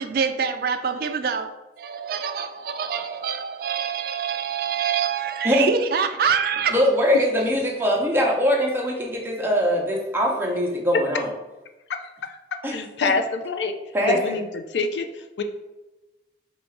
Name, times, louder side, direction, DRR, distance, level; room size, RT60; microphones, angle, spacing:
voice 1, 0.0-1.5 1.8-6.7, right 6 dB, 55° right, 8 dB, 0.3 m, -25 dB
voice 2, 6.7-11.3 12.6-12.8 13.9-14.3, equal, 15° right, -1 dB, 0.7 m, -22 dB
voice 3, 11.9-13.7 14.1-15.4, left 4 dB, 80° left, 6 dB, 0.4 m, -27 dB
3.9 x 2.4 x 4.4 m, 1.1 s
head